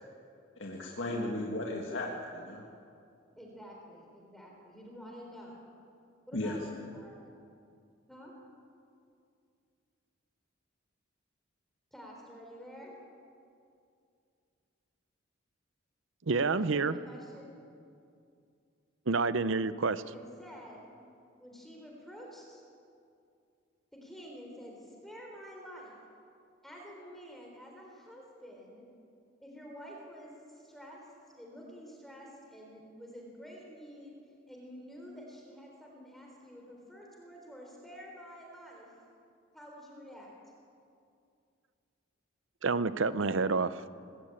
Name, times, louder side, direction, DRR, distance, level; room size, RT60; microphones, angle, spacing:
voice 1, 0.6-2.6 6.3-6.6, left 1 dB, 65° left, 2.1 m, -35 dB
voice 2, 3.3-5.7 6.3-7.2 8.1-8.3 11.9-12.9 16.6-17.5 20.1-20.9 21.4-22.6 23.9-25.9 26.6-28.8 29.4-31.1 31.4-34.2 34.5-38.9 39.5-40.3, equal, ahead, 3.9 m, -49 dB
voice 3, 16.3-17.0 19.1-20.0 42.6-43.8, right 4 dB, 75° right, 0.7 m, -28 dB
20.0 x 18.0 x 8.8 m
head